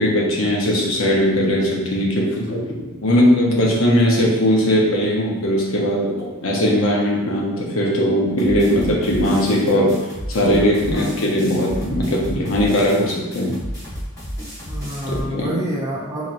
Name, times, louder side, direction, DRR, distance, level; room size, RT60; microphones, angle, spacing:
voice 1, 0.0-2.6 3.0-9.9 10.3-13.5 15.1-15.5, equal, 70° left, -2 dB, 0.8 m, -19 dB
sound 1, 8.4-15.2, equal, 15° left, 1.4 m, -32 dB
voice 2, 10.8-11.4 14.6-16.3, equal, 15° right, -6 dB, 0.5 m, -28 dB
4.3 x 2.9 x 2.5 m, 1.1 s
head